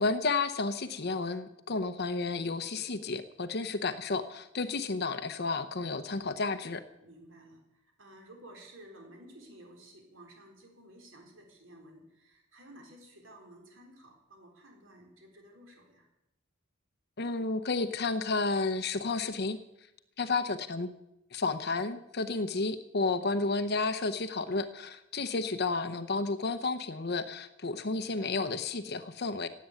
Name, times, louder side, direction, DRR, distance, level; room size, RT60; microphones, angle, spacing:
voice 1, 0.0-6.8 17.2-19.6 20.2-20.9 21.3-29.5, left 3 dB, 50° left, 10 dB, 0.9 m, -31 dB
voice 2, 7.0-16.1, right 1 dB, 70° right, 2 dB, 3.9 m, -54 dB
16.5 x 8.6 x 8.9 m, 0.86 s
head